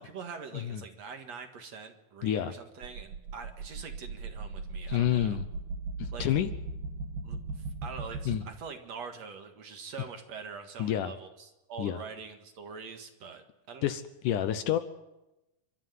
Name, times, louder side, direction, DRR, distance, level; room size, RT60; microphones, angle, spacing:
voice 1, 0.0-5.4 6.1-6.4 7.2-13.9, right 5 dB, 55° right, 5 dB, 2.5 m, -44 dB
voice 2, 2.2-2.6 4.9-5.5 6.0-6.5 8.3-8.5 10.8-11.1 11.8-12.0 13.8-14.8, left 11 dB, 70° left, 11 dB, 2.2 m, -29 dB
sound 1, 2.8-8.4, right 3 dB, 80° right, 3.9 m, -38 dB
28.5 x 13.0 x 9.3 m, 0.97 s
omnidirectional pair, 4.1 m